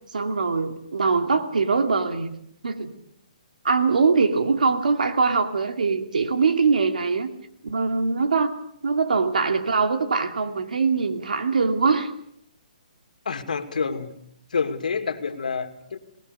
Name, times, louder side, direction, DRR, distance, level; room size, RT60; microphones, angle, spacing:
voice 1, 0.1-2.3 2.6-2.9 3.6-7.3 7.6-8.5 8.8-12.1, right 4 dB, 90° right, 7 dB, 2.7 m, -22 dB
voice 2, 13.2-14.1 14.5-16.0, left 5 dB, 85° left, 8 dB, 2.4 m, -28 dB
27.0 x 19.0 x 6.9 m, 0.70 s
hypercardioid pair, 160°, 4 cm